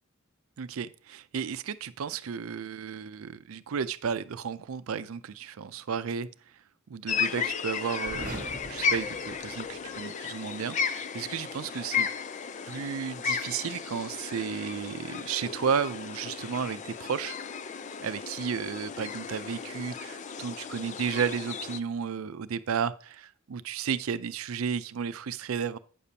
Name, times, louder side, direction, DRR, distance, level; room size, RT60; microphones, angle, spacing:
voice 1, 0.6-6.3 6.9-12.1 12.7-17.4 18.0-25.8, right 6 dB, 85° right, 14 dB, 0.4 m, -33 dB
sound 1, 7.1-21.8, left 6 dB, 35° left, 0.4 m, -34 dB
sound 2, 8.0-10.0, right 2 dB, 45° right, 1.1 m, -42 dB
9.2 x 6.7 x 2.8 m, 0.43 s
head